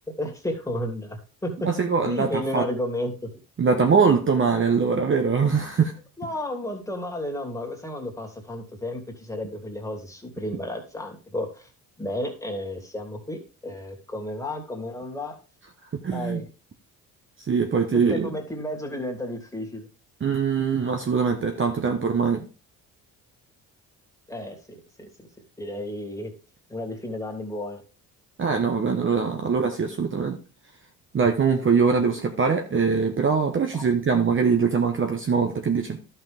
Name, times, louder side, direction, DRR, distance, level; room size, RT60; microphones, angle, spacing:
voice 1, 0.2-1.7 2.0-3.3 6.2-11.7 12.0-15.4 16.1-16.5 17.9-19.9 24.3-25.3 25.6-26.3 26.7-27.8 33.7-33.9, left 1 dB, 10° left, 2.8 m, -32 dB
voice 2, 1.6-2.7 3.6-5.9 15.9-16.4 17.4-18.3 20.2-22.5 28.4-30.4 31.1-36.0, right 5 dB, 35° right, 1.1 m, -22 dB
11.5 x 5.7 x 3.5 m
supercardioid pair, 80°, 37 cm